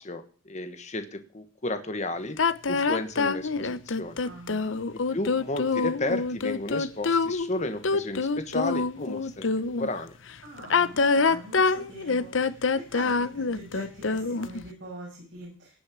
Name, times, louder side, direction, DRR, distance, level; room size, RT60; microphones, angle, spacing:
voice 1, 0.0-2.4 2.7-4.2 5.1-9.5 9.8-10.2, left 2 dB, 35° left, 8 dB, 1.3 m, -33 dB
sound 1, 2.4-9.9 10.6-14.6, left 4 dB, 65° left, 0.7 m, -25 dB
voice 2, 4.2-4.8 10.4-15.8, right 1 dB, 65° right, -4 dB, 7.9 m, -44 dB
18.0 x 6.5 x 8.6 m, 0.41 s
head